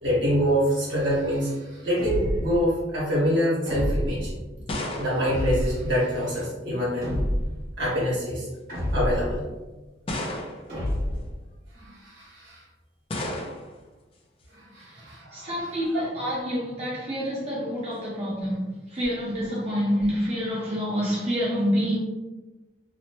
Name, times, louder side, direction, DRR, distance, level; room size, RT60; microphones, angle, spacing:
voice 1, 0.0-4.3 5.0-7.3 7.8-8.5 8.9-9.5 11.7-12.6 14.5-15.7, equal, 70° right, -7 dB, 1.3 m, -26 dB
sound 1, 2.0-2.6 3.7-4.3 5.3-5.9 7.0-7.7 8.7-9.4 10.7-11.3, equal, 55° right, 1.4 m, -28 dB
sound 2, 4.4-6.4 7.5-7.9 8.7-8.8 10.1-10.9 13.1-13.8, left 1 dB, 30° left, 0.4 m, -34 dB
voice 2, 15.3-22.0, equal, 35° right, -7 dB, 0.6 m, -27 dB
2.9 x 2.0 x 2.9 m, 1.1 s
head